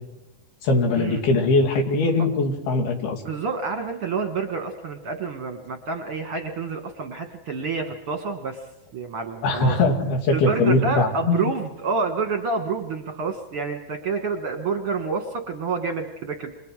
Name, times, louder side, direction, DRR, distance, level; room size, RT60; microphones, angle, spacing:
voice 1, 0.6-3.2 9.4-11.5, left 2 dB, 85° left, 3 dB, 4.5 m, -21 dB
voice 2, 3.2-8.6 8.9-9.7 10.3-16.5, right 4 dB, 50° right, 4 dB, 1.7 m, -28 dB
29.5 x 27.5 x 4.9 m, 0.95 s
omnidirectional pair, 4.3 m